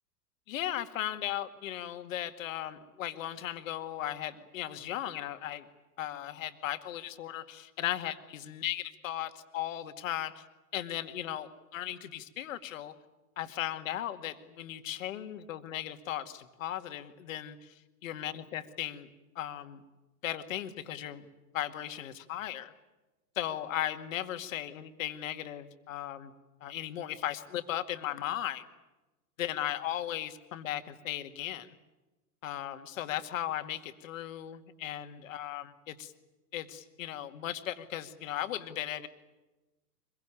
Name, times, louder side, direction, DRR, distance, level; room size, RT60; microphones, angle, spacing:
voice 1, 0.5-5.6 6.0-10.4 10.7-12.9 13.4-17.7 18.0-19.1 19.4-19.8 20.2-21.3 21.5-22.7 23.4-26.3 26.6-28.6 29.4-31.8 32.4-36.1 36.5-39.1, left 12 dB, 55° left, 9 dB, 2.2 m, -37 dB
25.0 x 22.5 x 9.1 m, 1.1 s
figure-of-eight pair, 100°, 48 cm